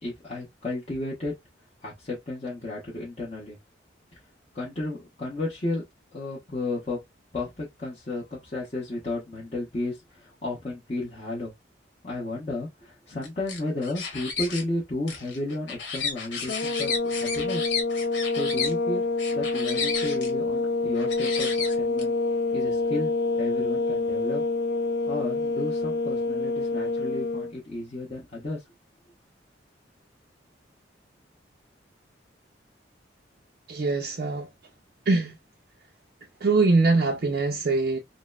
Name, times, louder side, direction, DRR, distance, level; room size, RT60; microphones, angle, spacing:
voice 1, 0.0-1.3 1.8-3.6 4.5-5.8 6.1-7.0 7.3-11.5 12.0-17.7 18.3-19.0 19.3-22.1 22.5-24.4 25.1-28.6, left 2 dB, 35° left, 1.0 m, -33 dB
sound 1, 13.2-14.6 15.1-18.7 19.2-20.3 20.9-22.0, left 5 dB, 75° left, 1.2 m, -32 dB
sound 2, 16.5-27.5, left 3 dB, 60° left, 0.4 m, -27 dB
voice 2, 33.7-34.5 35.1-35.3 36.4-38.0, right 3 dB, 55° right, 0.5 m, -23 dB
3.9 x 2.1 x 2.3 m
head